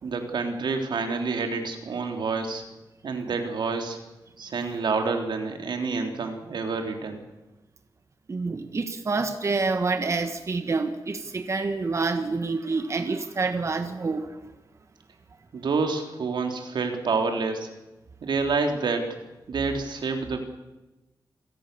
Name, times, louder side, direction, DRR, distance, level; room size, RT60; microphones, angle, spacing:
voice 1, 0.0-2.6 3.0-4.0 4.4-7.2 15.5-17.7 18.2-19.1 19.5-20.4, right 4 dB, 85° right, 5 dB, 3.6 m, -28 dB
voice 2, 8.3-14.4, right 3 dB, 40° right, 8 dB, 1.4 m, -27 dB
28.0 x 18.5 x 7.0 m, 1.0 s
wide cardioid pair, 135°, 8 cm